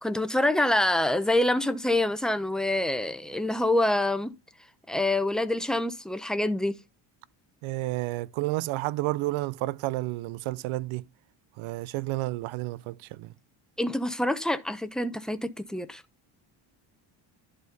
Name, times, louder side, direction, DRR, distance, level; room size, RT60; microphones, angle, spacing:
voice 1, 0.0-4.3 4.9-6.8 13.8-16.0, left 1 dB, ahead, 0.7 m, -26 dB
voice 2, 7.6-11.0 11.6-13.3, right 18 dB, 80° right, 0.6 m, -31 dB
11.0 x 4.2 x 5.3 m
cardioid pair, 130°, 47 cm